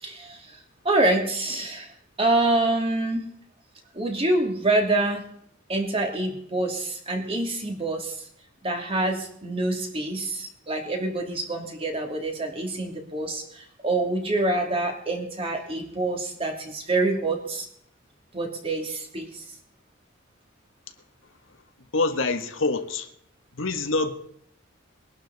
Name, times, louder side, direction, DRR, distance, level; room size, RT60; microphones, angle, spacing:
voice 1, 0.0-0.4 0.8-1.9 2.2-3.2 3.9-5.3 5.7-8.2 8.6-17.7 18.3-19.4, right 2 dB, 30° right, 3.0 m, -26 dB
voice 2, 21.9-23.1 23.6-24.1, left 3 dB, 80° left, 1.6 m, -25 dB
22.0 x 11.5 x 4.2 m
head